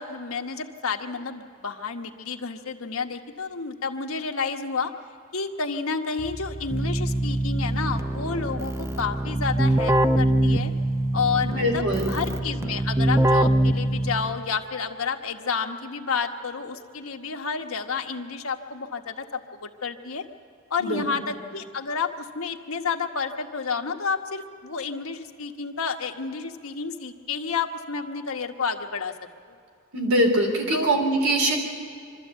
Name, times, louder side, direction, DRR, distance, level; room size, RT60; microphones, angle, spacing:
voice 1, 0.0-4.9 5.3-10.7 11.1-11.8 12.1-20.2 20.7-29.1 29.5-29.6 30.7-31.0, left 5 dB, 75° left, 4 dB, 1.2 m, -30 dB
Keyboard (musical), 6.2-14.5, right 1 dB, 15° right, 0.6 m, -24 dB
voice 2, 11.4-12.2 20.8-21.0 29.9-31.6, right 1 dB, 80° right, 1 dB, 3.8 m, -23 dB
24.0 x 13.0 x 8.1 m, 2.5 s
head